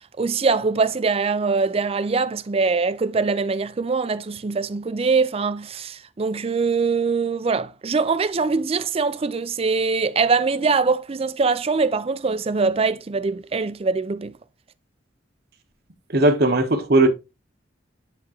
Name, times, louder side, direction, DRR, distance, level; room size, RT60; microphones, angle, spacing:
voice 1, 0.2-14.3, right 4 dB, 30° right, 0.4 m, -23 dB
voice 2, 16.1-17.1, right 2 dB, 55° right, 1.2 m, -17 dB
9.9 x 3.6 x 3.0 m
head